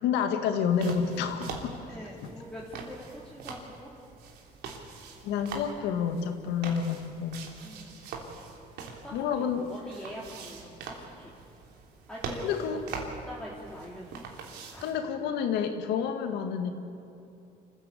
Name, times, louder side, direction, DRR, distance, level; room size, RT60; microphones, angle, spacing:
voice 1, 0.0-1.7 2.2-2.3 5.2-7.4 9.1-9.6 12.4-12.8 14.8-16.7, left 7 dB, 85° left, 6 dB, 2.1 m, -29 dB
sound 1, 0.7-15.0, right 4 dB, 80° right, 3.2 m, -43 dB
voice 2, 1.9-3.9 7.6-8.0 9.0-11.3 12.1-12.8 13.2-14.3 14.7-14.9, equal, 5° left, -5 dB, 3.0 m, -44 dB
27.0 x 15.0 x 8.5 m, 2.7 s
cardioid pair, 110°, 17 cm